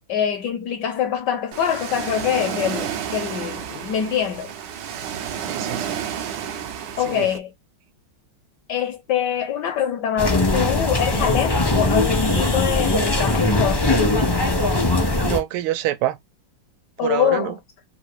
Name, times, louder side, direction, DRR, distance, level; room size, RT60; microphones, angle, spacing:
voice 1, 0.1-4.5 6.5-6.6 7.0-7.5 8.7-13.9 17.0-17.6, left 9 dB, 70° left, 1.0 m, -24 dB
Ocean, 1.5-7.4, right 8 dB, 70° right, 1.1 m, -31 dB
voice 2, 5.5-6.0 7.1-7.3 15.2-16.2 17.0-17.6, right 14 dB, 85° right, 1.5 m, -26 dB
sound 1, 10.2-15.4, left 2 dB, 30° left, 0.4 m, -20 dB
3.7 x 2.6 x 4.6 m
omnidirectional pair, 2.4 m